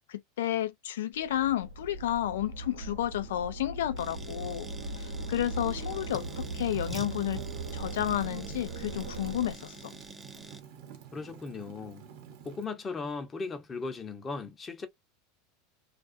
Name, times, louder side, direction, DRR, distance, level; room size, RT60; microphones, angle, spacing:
voice 1, 0.0-4.7 5.0-7.4 7.7-9.9, left 12 dB, 80° left, 0.5 m, -31 dB
sound 1, 1.1-9.5, right 2 dB, 90° right, 0.8 m, -39 dB
sound 2, 4.0-10.6, right 2 dB, 10° right, 0.5 m, -47 dB
Fire, 6.1-12.6, right 8 dB, 65° right, 1.0 m, -50 dB
voice 2, 11.1-12.0 12.4-14.9, left 4 dB, 25° left, 0.8 m, -37 dB
2.4 x 2.3 x 2.5 m
hypercardioid pair, 100°, 0 cm